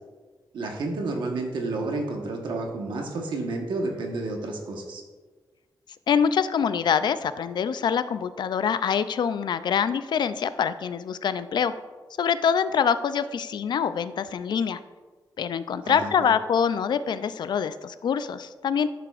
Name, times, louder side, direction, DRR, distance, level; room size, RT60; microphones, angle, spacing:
voice 1, 0.5-5.0 15.8-16.3, right 2 dB, 85° right, 2 dB, 1.2 m, -30 dB
voice 2, 6.1-11.7 12.2-14.8 15.4-18.9, left 7 dB, 70° left, 13 dB, 0.4 m, -25 dB
11.0 x 6.8 x 2.4 m, 1.4 s
wide cardioid pair, 105°, 8 cm